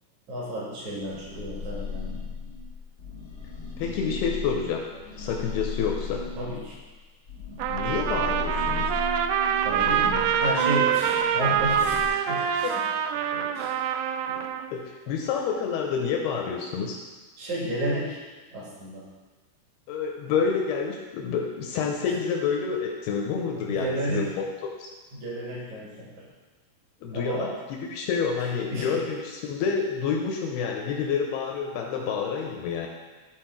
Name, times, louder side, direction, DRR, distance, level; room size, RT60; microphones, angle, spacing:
voice 1, 0.3-2.1 6.4-6.8 9.6-12.8 13.1-13.8 14.3-14.4 15.1-15.2 17.4-18.2 18.5-19.1 22.1-22.2 23.6-24.3 25.1-26.3 27.1-27.5 28.4-29.0, right 1 dB, 50° right, -4 dB, 2.7 m, -32 dB
sound 1, 0.8-6.9 7.3-12.1, left 3 dB, 50° left, 1.0 m, -35 dB
voice 2, 3.8-4.9 5.2-6.2 7.7-8.9 12.6-12.7 14.7-17.0 19.9-24.4 24.8-24.9 27.0-27.5 27.9-32.9, left 6 dB, 85° left, 1 dB, 2.4 m, -28 dB
Trumpet, 7.6-14.7, right 8 dB, 85° right, 2.6 m, -25 dB
12.5 x 4.5 x 4.5 m, 1.3 s
omnidirectional pair, 5.2 m